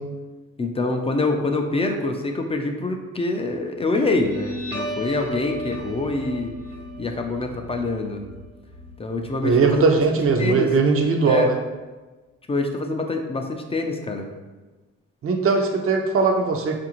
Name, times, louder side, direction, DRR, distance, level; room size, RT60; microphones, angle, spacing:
voice 1, 0.6-6.5 7.0-8.3 9.0-10.0 10.4-10.7 11.2-11.5 12.5-14.3, left 2 dB, 20° left, 3 dB, 0.4 m, -25 dB
Guitar, 3.9-10.9, left 1 dB, 80° right, 1.1 m, -35 dB
voice 2, 9.4-11.6 15.2-16.8, right 4 dB, 45° right, 3 dB, 0.6 m, -19 dB
4.7 x 2.5 x 2.9 m, 1.2 s
cardioid pair, 90°, 30 cm